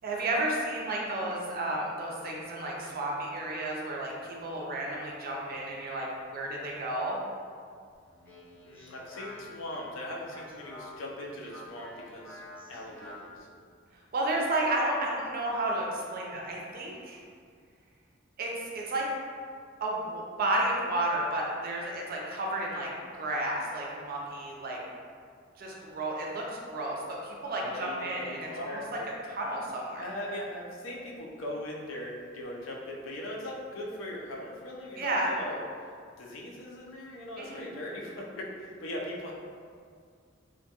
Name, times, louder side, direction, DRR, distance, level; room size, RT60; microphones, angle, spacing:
voice 1, 0.0-7.2 14.1-17.2 18.4-19.1 19.8-24.8 25.6-29.0 29.4-30.1 35.0-35.3 37.4-37.6, right 1 dB, 50° right, -2 dB, 0.4 m, -32 dB
Speech, 8.0-13.4, left 1 dB, 10° left, 0.6 m, -49 dB
voice 2, 8.6-12.4 12.7-13.5 27.6-29.0 29.9-35.9 36.2-39.3, left 1 dB, 80° left, -2 dB, 0.4 m, -40 dB
2.2 x 2.2 x 2.8 m, 2.1 s
head